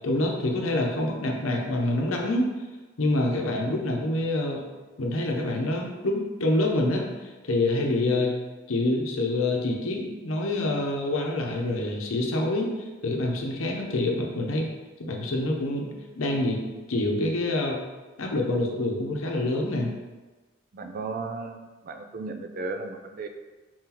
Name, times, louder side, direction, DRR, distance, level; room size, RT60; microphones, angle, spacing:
voice 1, 0.0-2.5 3.0-4.6 5.0-8.3 8.7-12.7 13.0-14.7 15.0-15.9 16.2-16.6 16.9-17.8 18.2-19.9, left 2 dB, 85° left, 0 dB, 0.8 m, -26 dB
voice 2, 20.7-23.3, right 3 dB, 45° right, 6 dB, 0.4 m, -35 dB
4.6 x 3.8 x 2.9 m, 1.2 s
head